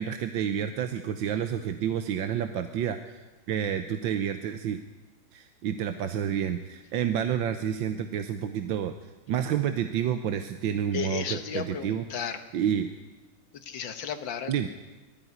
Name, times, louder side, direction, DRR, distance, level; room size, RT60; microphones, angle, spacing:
voice 1, 0.0-3.2 3.5-4.8 5.3-8.9 9.3-12.0 12.5-12.9 14.5-14.7, right 9 dB, 75° right, 8 dB, 1.5 m, -29 dB
voice 2, 10.9-12.4 13.5-14.7, left 7 dB, 70° left, 9 dB, 1.9 m, -34 dB
20.0 x 14.0 x 9.5 m, 1.2 s
omnidirectional pair, 2.2 m